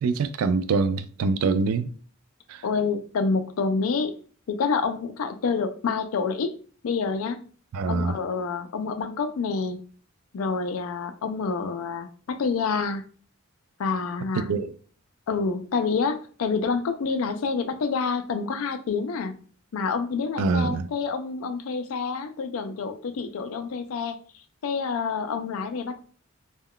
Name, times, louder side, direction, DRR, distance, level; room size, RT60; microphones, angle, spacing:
voice 1, 0.0-1.9 2.5-2.6 7.7-8.1 14.5-14.7 20.4-20.8, right 4 dB, 85° right, 0.3 m, -24 dB
voice 2, 2.6-4.1 4.5-6.5 6.8-7.4 7.9-9.8 10.3-13.0 13.8-14.5 15.3-19.4 19.7-26.0, left 5 dB, 70° left, 0.4 m, -28 dB
2.2 x 2.2 x 3.6 m
head